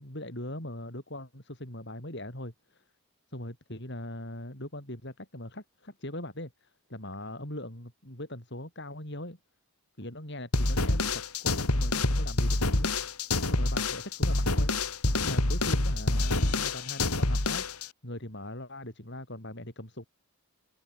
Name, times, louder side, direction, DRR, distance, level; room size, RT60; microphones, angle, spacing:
voice 1, 0.0-2.8 3.3-9.4 10.0-12.9 13.5-14.7 15.2-20.1, left 1 dB, 50° left, 7.2 m, -41 dB
sound 1, 10.5-17.9, left 2 dB, 85° left, 3.6 m, -27 dB
head